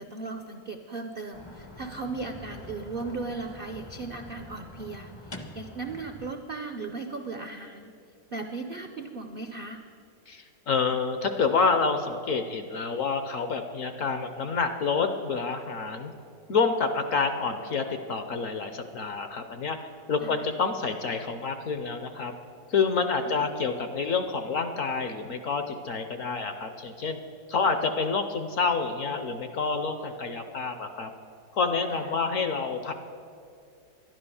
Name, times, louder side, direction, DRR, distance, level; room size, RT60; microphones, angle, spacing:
voice 1, 0.0-7.9 8.3-9.8 20.2-20.4 23.2-23.5 31.9-32.1, right 3 dB, 65° right, 6 dB, 0.5 m, -37 dB
sound 1, 1.3-6.3, left 1 dB, 25° left, 0.5 m, -45 dB
voice 2, 10.3-16.1 16.5-19.8 20.1-22.3 22.7-27.2 27.5-31.1 31.5-32.9, left 4 dB, 60° left, 8 dB, 0.9 m, -28 dB
12.0 x 11.0 x 7.0 m, 2.5 s
omnidirectional pair, 2.0 m